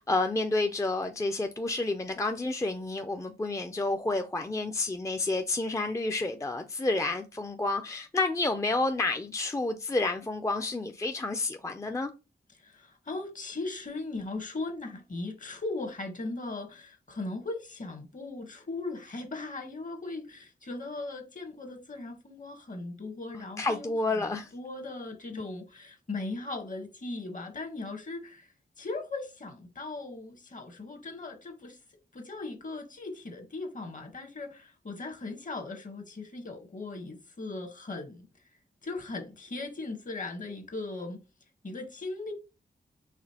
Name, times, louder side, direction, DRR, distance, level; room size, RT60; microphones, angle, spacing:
voice 1, 0.0-12.1 23.3-24.5, left 2 dB, 15° left, 0.4 m, -30 dB
voice 2, 12.5-28.5 28.8-31.8 32.1-38.3 38.8-41.2 41.6-42.3, left 3 dB, 45° left, 1.1 m, -38 dB
4.9 x 2.9 x 2.8 m
cardioid pair, 55°, 18 cm